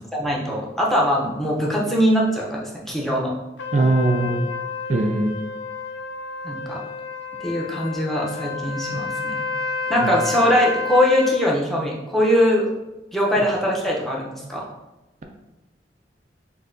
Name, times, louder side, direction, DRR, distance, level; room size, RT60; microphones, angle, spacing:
voice 1, 0.1-3.3 6.4-6.8 7.4-9.5 9.9-12.7 13.1-14.6, equal, ahead, -4 dB, 0.7 m, -21 dB
Trumpet, 3.6-11.4, left 4 dB, 85° left, 0.6 m, -30 dB
voice 2, 3.7-4.5 4.9-5.3 10.0-10.1, right 2 dB, 40° right, 2 dB, 0.4 m, -20 dB
6.3 x 2.7 x 2.6 m, 1.0 s
head